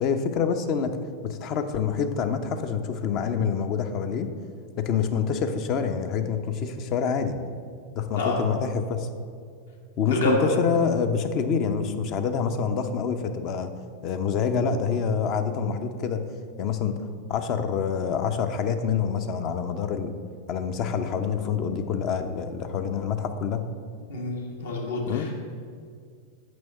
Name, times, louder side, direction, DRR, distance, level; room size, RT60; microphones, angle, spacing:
voice 1, 0.0-4.3 4.8-7.3 7.9-9.1 10.0-13.7 14.0-16.2 16.6-17.0 17.3-20.2 20.5-23.6 25.1-25.3, left 6 dB, 40° left, 8 dB, 0.7 m, -26 dB
voice 2, 10.1-10.6 24.1-25.5, left 1 dB, 65° left, -2 dB, 1.8 m, -28 dB
6.2 x 6.2 x 7.1 m, 2.2 s
figure-of-eight pair, 90°, 0 cm